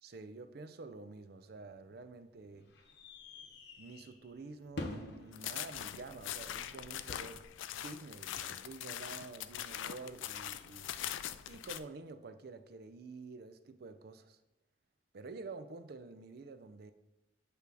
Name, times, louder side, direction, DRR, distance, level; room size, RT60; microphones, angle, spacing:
voice 1, 0.0-2.7 3.8-7.4 7.8-10.9 11.5-14.4 15.1-16.9, right 3 dB, 55° right, 10 dB, 0.5 m, -49 dB
sound 1, 1.5-7.5, left 2 dB, 65° left, 1.0 m, -49 dB
sound 2, 5.3-11.8, left 11 dB, 90° left, 0.4 m, -42 dB
8.9 x 3.4 x 4.8 m, 0.94 s
head